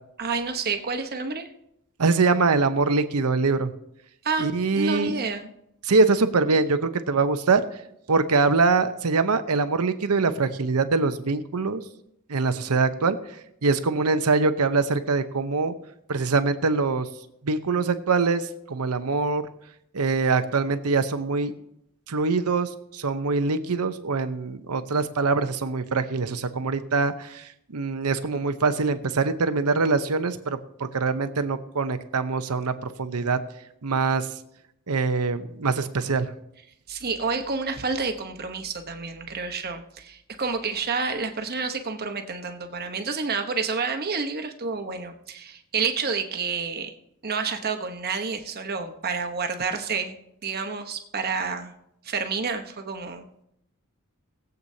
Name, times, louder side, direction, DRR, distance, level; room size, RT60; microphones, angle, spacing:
voice 1, 0.2-1.5 4.2-5.5 36.9-46.9 47.2-50.2 50.4-51.7 52.0-53.3, right 4 dB, 45° right, 6 dB, 1.0 m, -29 dB
voice 2, 2.0-3.7 4.4-5.1 5.8-7.6 8.1-11.8 12.3-13.2 13.6-15.7 16.1-17.1 17.4-19.4 19.9-21.5 22.1-30.6 30.9-33.4 33.8-34.3 34.9-36.3, right 4 dB, 90° right, 10 dB, 0.8 m, -23 dB
20.5 x 8.0 x 2.8 m, 0.77 s
head